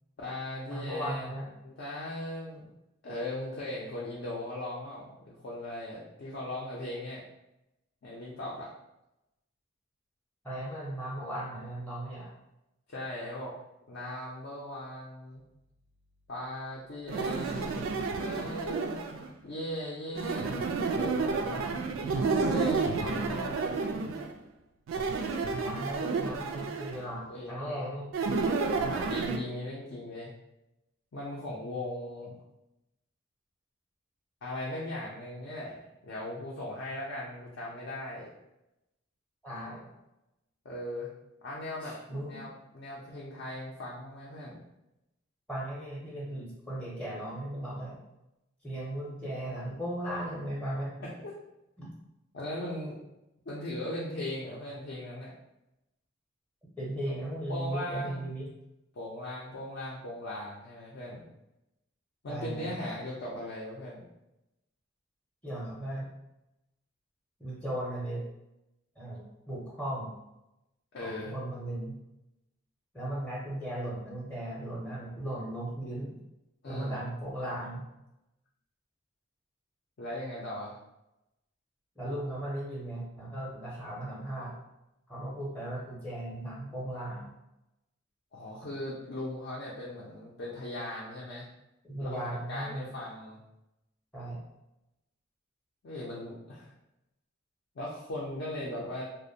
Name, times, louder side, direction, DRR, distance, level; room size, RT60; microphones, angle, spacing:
voice 1, 0.2-1.3 1.6-2.7 3.0-7.2 8.0-8.7 12.9-13.6 13.9-15.4 16.3-19.0 19.4-21.7 22.4-23.7 27.3-27.8 28.9-30.3 31.1-32.4 34.4-38.3 40.6-41.1 41.4-42.0 42.2-44.6 51.0-51.4 52.3-53.0 53.5-55.3 57.1-57.2 57.5-58.2 58.9-61.2 62.2-64.0 70.9-71.4 76.6-77.0 80.0-80.8 88.3-91.5 92.0-93.4 95.8-96.7 97.8-99.0, left 1 dB, 60° left, -5 dB, 0.4 m, -38 dB
voice 2, 0.7-1.5 10.4-12.3 25.6-28.1 39.4-39.9 41.8-42.4 45.5-48.0 48.6-50.9 51.8-51.9 56.8-58.5 62.3-62.7 65.4-66.1 67.4-68.2 69.0-70.1 71.0-72.0 72.9-76.2 76.6-77.9 82.0-84.5 85.1-87.3 91.9-92.9 94.1-94.4, right 1 dB, 5° left, -6 dB, 0.5 m, -37 dB
sound 1, 17.1-19.3 20.2-24.3 24.9-27.1 28.1-29.4, right 4 dB, 85° right, 0.3 m, -30 dB
2.4 x 2.1 x 2.6 m, 0.91 s
head